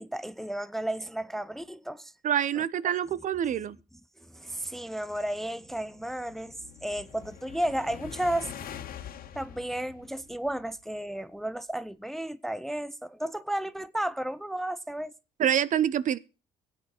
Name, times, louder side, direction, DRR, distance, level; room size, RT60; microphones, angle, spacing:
voice 1, 0.0-2.1 2.6-2.7 4.3-8.8 9.3-15.1, right 1 dB, ahead, 0.5 m, -33 dB
voice 2, 2.2-3.8 15.4-16.2, right 9 dB, 50° right, 0.7 m, -26 dB
sound 1, 5.5-10.9, left 9 dB, 60° left, 1.7 m, -45 dB
15.5 x 8.8 x 4.3 m
cardioid pair, 110°, 17 cm